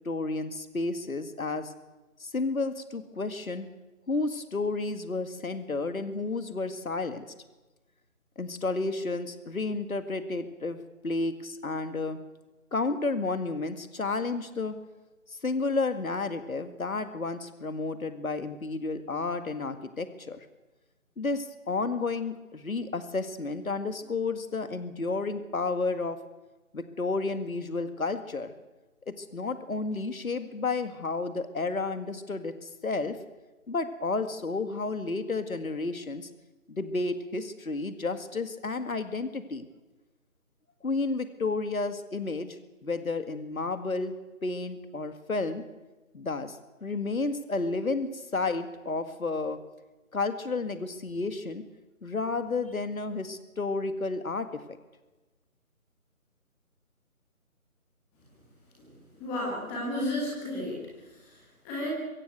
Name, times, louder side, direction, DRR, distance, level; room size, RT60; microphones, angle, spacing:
voice 1, 0.0-1.7 2.2-3.7 4.1-7.3 8.4-12.2 12.7-14.8 15.3-20.5 21.2-26.2 26.7-28.5 29.1-33.2 33.7-36.3 36.7-39.7 40.8-44.1 44.4-45.6 46.1-49.6 50.1-51.6 52.0-54.6, left 3 dB, 75° left, 10 dB, 2.0 m, -31 dB
voice 2, 59.2-60.8 61.6-61.9, left 1 dB, 5° left, -3 dB, 1.5 m, -32 dB
24.0 x 15.5 x 8.1 m, 1.1 s
figure-of-eight pair, 165°, 43 cm